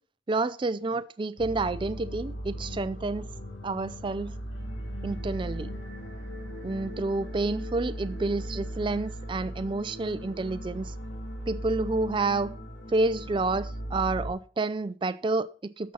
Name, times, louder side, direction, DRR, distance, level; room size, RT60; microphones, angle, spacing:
voice 1, 0.3-3.3 3.6-4.3 5.0-5.7 6.6-10.9 11.5-12.5 12.9-15.9, right 3 dB, 25° right, 0.4 m, -29 dB
sound 1, 1.4-14.3, equal, 85° left, 2.3 m, -38 dB
13.5 x 6.1 x 4.2 m
head